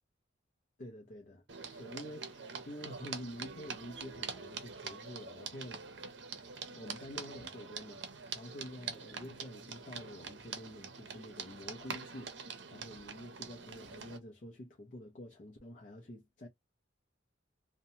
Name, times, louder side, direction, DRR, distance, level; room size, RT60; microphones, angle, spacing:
voice 1, 0.8-5.8 6.7-16.5, left 1 dB, 45° left, 0.5 m, -48 dB
sound 1, 1.5-14.2, right 5 dB, 65° right, 0.6 m, -45 dB
2.8 x 2.1 x 2.7 m
head